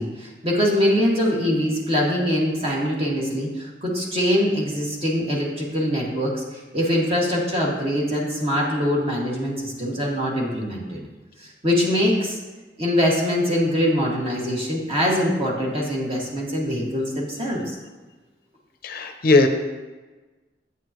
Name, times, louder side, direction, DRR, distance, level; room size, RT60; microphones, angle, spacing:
voice 1, 0.0-11.0 11.6-12.4 12.8-17.8, equal, 35° right, -4 dB, 2.1 m, -23 dB
voice 2, 18.8-19.5, left 3 dB, 55° left, 6 dB, 0.7 m, -18 dB
9.6 x 8.6 x 3.0 m, 1.3 s
head